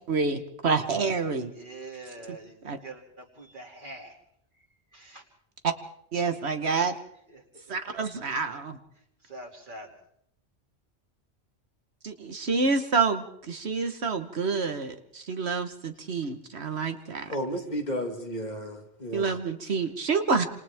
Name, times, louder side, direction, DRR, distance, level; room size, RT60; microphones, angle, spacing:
voice 1, 0.1-1.5 2.6-2.8 6.1-7.0 7.7-8.8 12.0-17.3 19.1-20.5, right 4 dB, 75° right, 1.5 m, -28 dB
voice 2, 1.5-4.2 4.6-4.7 4.9-5.2 7.3-7.7 9.2-10.0, right 2 dB, 50° right, 2.9 m, -44 dB
voice 3, 17.3-19.4, equal, 40° left, 2.0 m, -33 dB
28.5 x 27.0 x 3.6 m
omnidirectional pair, 1.1 m